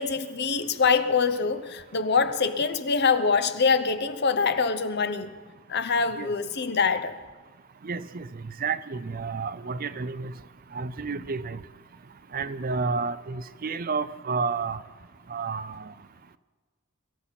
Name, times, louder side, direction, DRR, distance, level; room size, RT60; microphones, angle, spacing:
voice 1, 0.0-5.3 5.7-7.2, left 5 dB, 55° left, 0.9 m, -24 dB
voice 2, 7.8-8.3 8.6-10.3 10.7-11.6 12.3-14.8 15.3-15.8, right 4 dB, 45° right, 0.6 m, -30 dB
23.5 x 14.0 x 4.2 m
head